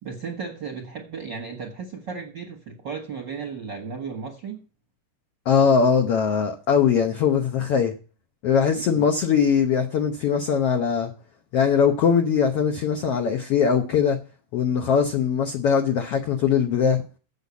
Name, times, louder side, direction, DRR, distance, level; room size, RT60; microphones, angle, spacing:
voice 1, 0.0-4.6 8.7-9.0, right 5 dB, 55° right, 1.2 m, -35 dB
voice 2, 5.4-7.9 8.4-11.1 11.5-14.2 14.5-17.0, left 7 dB, 75° left, 1.4 m, -21 dB
8.2 x 7.1 x 8.3 m
omnidirectional pair, 4.0 m